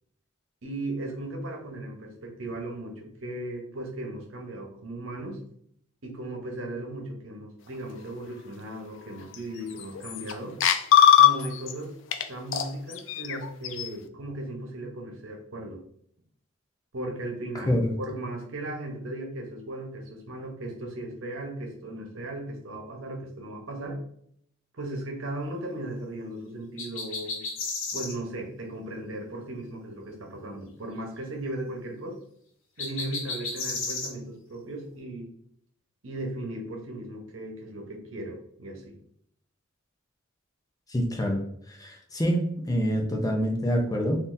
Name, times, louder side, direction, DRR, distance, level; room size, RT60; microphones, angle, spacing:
voice 1, 0.6-5.4 6.0-10.6 11.2-11.9 12.3-15.8 16.9-24.0 24.7-27.5 27.9-32.2 32.8-35.3 36.0-39.0, right 1 dB, 85° right, 2 dB, 0.9 m, -37 dB
sound 1, 9.3-9.4 9.8-10.3 10.6-11.7 12.1-12.2 12.5-13.9, left 10 dB, 65° left, 0.3 m, -20 dB
sound 2, 26.8-28.2 32.8-34.1, left 3 dB, 90° left, 1.0 m, -33 dB
voice 2, 40.9-41.4 41.7-44.2, equal, 20° left, 2 dB, 0.6 m, -26 dB
3.9 x 2.7 x 2.6 m, 0.68 s
head